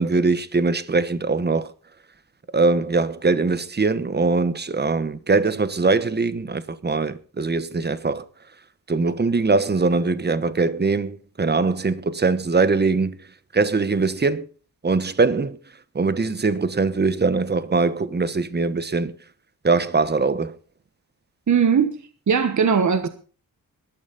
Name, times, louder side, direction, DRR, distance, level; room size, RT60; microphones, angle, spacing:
voice 1, 0.0-1.7 2.5-8.2 8.9-13.2 13.5-14.5 14.8-15.6 15.9-19.1 19.6-20.5, right 4 dB, 30° right, 1.2 m, -22 dB
voice 2, 21.5-22.0 22.3-23.1, right 6 dB, 50° right, 1.5 m, -19 dB
19.0 x 12.5 x 4.1 m
wide cardioid pair, 120°, 36 cm